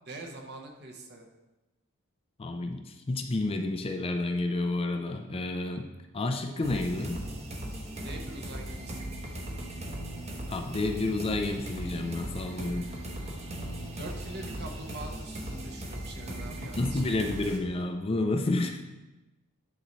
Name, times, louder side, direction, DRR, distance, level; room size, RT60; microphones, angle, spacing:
voice 1, 0.1-1.3 8.0-9.1 13.9-17.4, right 2 dB, 50° right, 2 dB, 0.9 m, -44 dB
voice 2, 2.4-5.9 6.1-7.2 10.5-12.9 16.8-18.8, left 2 dB, 25° left, 5 dB, 0.4 m, -30 dB
sound 1, 6.6-17.6, right 1 dB, 30° right, 0.9 m, -38 dB
9.9 x 4.0 x 3.1 m, 1.1 s
head